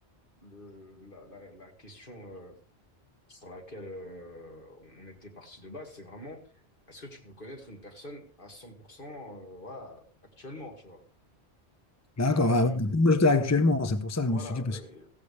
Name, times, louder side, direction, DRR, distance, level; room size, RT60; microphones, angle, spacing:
voice 1, 0.4-2.6 3.3-6.4 6.9-10.0 10.4-11.0 12.2-12.8 14.3-15.1, left 1 dB, 50° left, 2.5 m, -45 dB
voice 2, 12.2-14.8, left 2 dB, 15° left, 0.7 m, -24 dB
15.5 x 15.0 x 3.4 m
omnidirectional pair, 1.1 m